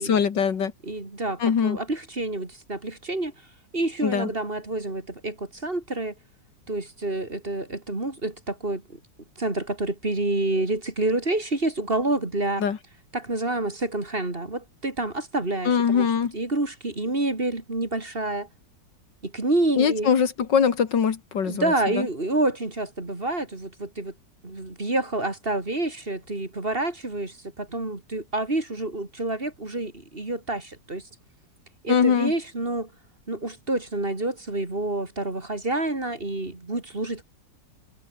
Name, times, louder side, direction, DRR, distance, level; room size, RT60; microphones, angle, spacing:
voice 1, 0.0-0.7 1.4-1.8 4.0-4.3 12.6-12.8 15.7-16.3 19.8-22.1 31.9-32.3, left 7 dB, 70° left, 2.4 m, -22 dB
voice 2, 0.8-3.3 3.7-6.1 6.7-8.8 9.4-12.6 13.1-18.5 19.2-20.1 21.4-24.1 24.4-31.0 31.8-32.9 33.3-37.2, right 2 dB, 30° right, 3.3 m, -28 dB
omnidirectional pair, 2.0 m